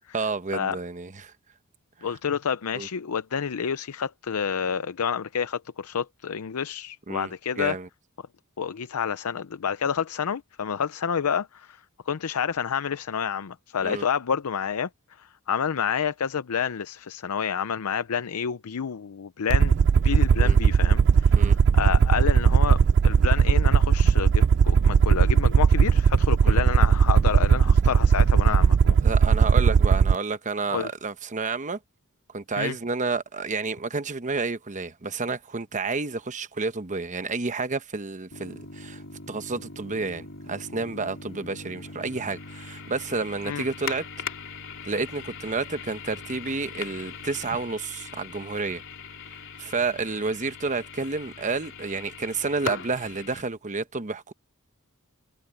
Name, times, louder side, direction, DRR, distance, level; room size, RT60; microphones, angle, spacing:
voice 1, 0.1-1.3 2.7-2.9 7.1-7.9 13.8-14.0 20.4-20.6 21.3-21.6 26.4-26.6 29.0-31.8 32.3-39.0 39.3-44.0 44.8-48.8 49.6-54.3, right 4 dB, 35° right, 1.0 m, -30 dB
voice 2, 2.0-7.8 8.6-11.8 12.1-14.9 15.2-19.8 20.0-29.0 30.7-30.9 32.6-32.7 43.4-43.6, left 7 dB, 75° left, 0.6 m, -29 dB
Aircraft, 19.5-30.2, right 6 dB, 50° right, 0.3 m, -18 dB
sound 1, 38.3-53.4, left 5 dB, 60° left, 3.9 m, -40 dB
head